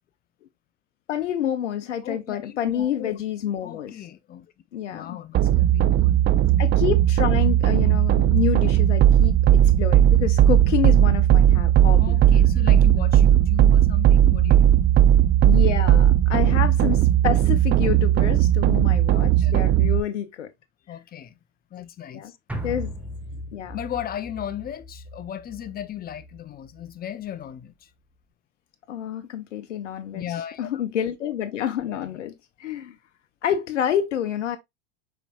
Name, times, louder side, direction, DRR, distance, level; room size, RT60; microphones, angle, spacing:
voice 1, 1.1-4.0 4.7-5.2 6.6-12.2 15.4-20.5 20.9-21.0 22.1-22.3 22.6-22.9 23.5-23.8 28.9-33.0 33.4-34.6, left 10 dB, 90° left, 0.6 m, -28 dB
voice 2, 2.0-3.2 3.6-4.5 4.9-6.3 12.0-14.8 15.9-16.0 19.1-19.5 20.9-21.4 21.7-22.4 23.7-27.9 30.1-30.7 31.9-32.3, left 10 dB, 25° left, 0.6 m, -36 dB
sound 1, 5.3-20.0, right 11 dB, 30° right, 0.4 m, -17 dB
sound 2, 22.5-26.9 27.3-27.4, equal, 5° right, 1.1 m, -37 dB
5.0 x 4.3 x 2.3 m
hypercardioid pair, 95°, 35 cm